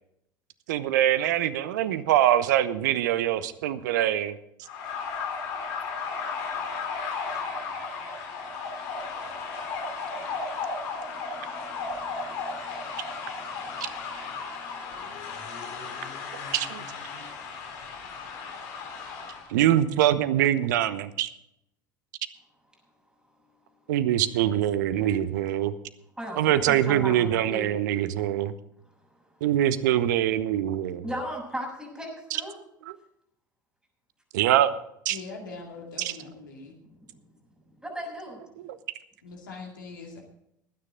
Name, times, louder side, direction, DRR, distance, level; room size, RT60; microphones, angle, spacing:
voice 1, 0.7-4.4 16.5-16.7 19.5-21.3 23.9-25.7 26.4-28.5 29.4-31.1 34.3-34.7 35.0-35.2 36.0-36.2 38.7-38.8, right 12 dB, 65° right, 0.9 m, -23 dB
sound 1, 4.6-19.5, left 4 dB, 60° left, 3.4 m, -35 dB
voice 2, 6.9-7.4 8.8-9.0 10.0-14.8 15.0-16.0 17.4-17.5 18.8-18.9 25.0-25.2 26.2-27.7 31.0-32.5 36.8-37.2 37.6-38.4, equal, 10° right, 6.7 m, -40 dB
voice 3, 35.1-36.7 39.2-40.2, left 4 dB, 75° left, 2.4 m, -42 dB
20.0 x 9.7 x 3.8 m
figure-of-eight pair, 70°, 11 cm